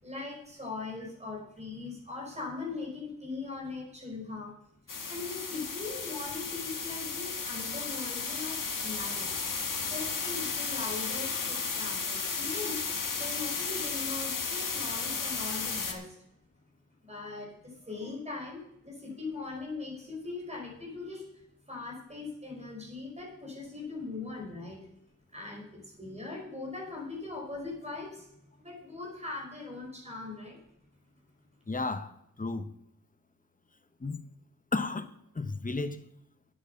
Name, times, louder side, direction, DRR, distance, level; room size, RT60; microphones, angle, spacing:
voice 1, 0.0-4.5 5.1-9.3 9.8-12.9 13.1-16.2 17.1-21.2 21.7-24.9 25.3-28.3 28.6-30.6, left 3 dB, 20° right, 5.2 m, -40 dB
sound 1, 4.9-15.9, left 5 dB, 70° left, 1.6 m, -34 dB
voice 2, 31.7-32.7 34.0-34.2 34.7-36.1, left 3 dB, 25° left, 0.8 m, -34 dB
9.4 x 8.6 x 6.7 m
wide cardioid pair, 100°, 33 cm